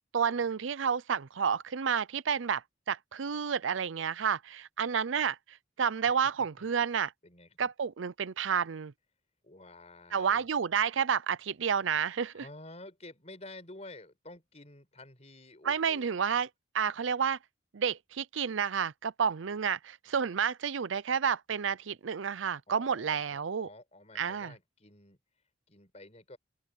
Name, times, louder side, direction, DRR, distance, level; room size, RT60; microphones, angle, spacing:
voice 1, 0.1-7.1 7.6-8.9 10.1-12.4 15.6-16.5 16.7-17.4 17.7-23.7 24.2-24.5, right 7 dB, 85° right, 0.6 m, -30 dB
voice 2, 7.2-7.7 9.4-10.4 12.3-16.1 22.7-25.2 25.7-26.4, left 2 dB, 35° left, 5.1 m, -50 dB
open air
head